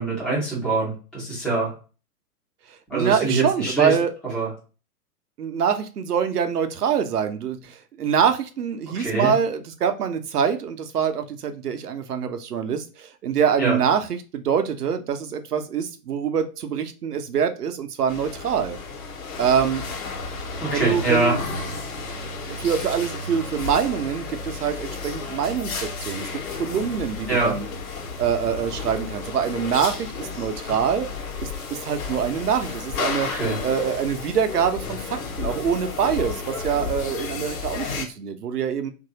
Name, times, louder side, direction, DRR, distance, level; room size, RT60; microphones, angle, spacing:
voice 1, 0.0-1.7 2.9-3.9 4.3-4.5 8.9-9.3 13.6-13.8 20.6-21.3 27.3-27.5 33.3-33.6, right 3 dB, ahead, -6 dB, 0.4 m, -24 dB
voice 2, 2.7-4.1 5.4-18.8 19.4-19.8 20.7-21.4 22.5-26.3 26.6-27.7 28.2-31.1 31.4-31.5 31.8-33.3 33.6-38.9, right 7 dB, 75° right, 8 dB, 0.7 m, -25 dB
sound 1, 18.1-38.1, left 4 dB, 60° left, 1.0 m, -32 dB
3.0 x 2.6 x 2.8 m, 0.35 s
figure-of-eight pair, 120°, 47 cm